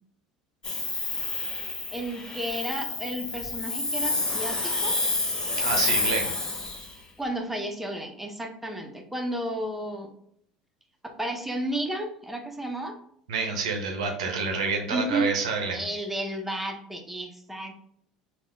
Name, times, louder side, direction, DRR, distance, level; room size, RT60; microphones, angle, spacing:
Hiss, 0.6-6.9, left 2 dB, 25° left, 0.9 m, -29 dB
voice 1, 1.9-4.9 7.2-10.1 11.2-13.0 14.9-15.3 15.7-17.9, right 1 dB, 5° right, 2 dB, 0.8 m, -32 dB
voice 2, 5.6-6.3 13.3-15.8, right 4 dB, 80° right, 3 dB, 0.6 m, -28 dB
3.5 x 2.4 x 3.3 m, 0.67 s
hypercardioid pair, 70°, 3 cm